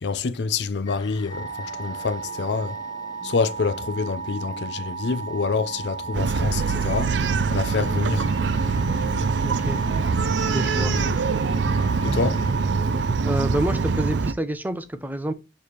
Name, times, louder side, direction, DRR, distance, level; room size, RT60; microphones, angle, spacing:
voice 1, 0.0-2.8 3.2-7.2 7.5-8.3 10.8-11.7 12.0-12.5, left 4 dB, 70° left, 0.5 m, -27 dB
sound 1, 0.8-12.5, left 2 dB, 20° left, 1.0 m, -42 dB
sound 2, 1.3-13.2, right 6 dB, 60° right, 0.9 m, -35 dB
Bark, 6.1-14.3, right 4 dB, 85° right, 0.5 m, -24 dB
voice 2, 9.4-9.8 10.5-10.9 13.2-15.3, right 1 dB, 10° right, 0.6 m, -27 dB
6.9 x 3.2 x 4.2 m
head